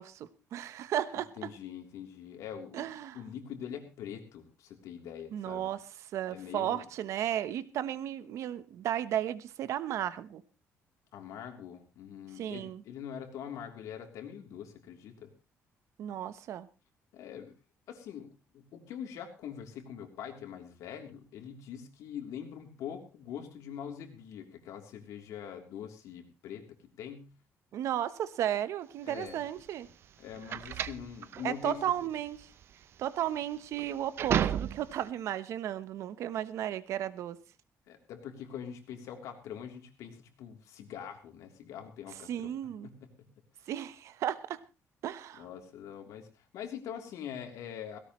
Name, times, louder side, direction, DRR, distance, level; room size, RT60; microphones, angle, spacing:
voice 1, 0.0-1.5 2.7-3.2 5.3-5.8 6.1-10.4 12.4-12.8 16.0-16.7 27.7-29.9 31.4-32.5 33.0-37.4 42.3-42.9 43.7-44.6 45.0-45.4, right 11 dB, 60° right, 15 dB, 1.0 m, -34 dB
voice 2, 1.4-2.9 3.1-5.7 6.3-6.8 11.1-15.3 17.1-17.5 17.9-26.6 27.0-27.3 29.0-29.4 30.2-31.8 37.9-42.5 42.8-43.1 45.4-48.0, left 8 dB, 75° left, 4 dB, 3.4 m, -43 dB
sound 1, 29.1-35.1, right 9 dB, 45° right, 0.7 m, -34 dB
17.5 x 17.0 x 3.2 m, 0.31 s
cardioid pair, 170°, 6 cm